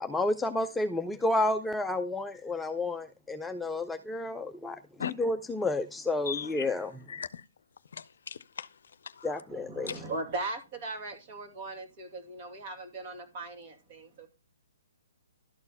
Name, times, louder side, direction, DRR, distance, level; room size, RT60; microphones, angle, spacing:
voice 1, 0.0-7.0 9.2-10.0, left 2 dB, 5° left, 0.5 m, -31 dB
voice 2, 6.3-6.7 7.1-7.4 7.9-8.7 9.2-9.3 9.9-10.0, left 7 dB, 70° left, 0.5 m, -38 dB
voice 3, 9.5-14.3, right 2 dB, 40° right, 2.6 m, -39 dB
12.0 x 4.3 x 5.5 m
hypercardioid pair, 140°, 0 cm